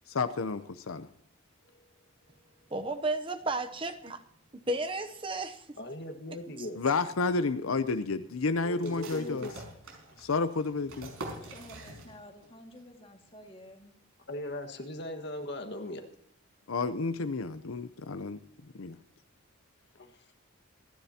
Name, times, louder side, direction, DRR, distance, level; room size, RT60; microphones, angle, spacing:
voice 1, 0.1-1.1 6.8-9.5 10.2-11.1 16.7-18.4 18.7-19.0, left 4 dB, 75° left, 11 dB, 0.7 m, -30 dB
voice 2, 2.7-4.2 4.7-5.8 6.6-6.7, right 2 dB, 25° right, 8 dB, 0.7 m, -33 dB
voice 3, 5.8-6.8 8.6-9.5 14.3-16.0 19.9-20.1, left 1 dB, 50° left, 5 dB, 1.7 m, -38 dB
sound 1, 8.8-12.5 12.7-12.8 13.3-13.7, right 2 dB, 75° right, 5.2 m, -45 dB
voice 4, 11.4-13.9, left 1 dB, 25° left, 3 dB, 2.0 m, -51 dB
27.0 x 10.5 x 2.9 m, 0.68 s
head